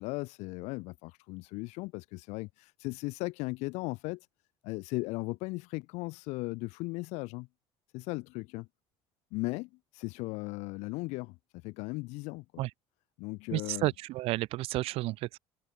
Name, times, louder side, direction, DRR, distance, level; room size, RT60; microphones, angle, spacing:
voice 1, 0.0-4.3 4.6-7.5 7.9-8.7 9.3-11.4 11.6-12.6 13.2-13.9, left 25 dB, 85° left, 1.9 m, -37 dB
voice 2, 13.5-15.4, right 18 dB, 60° right, 1.2 m, -31 dB
cardioid pair, 180°, 11 cm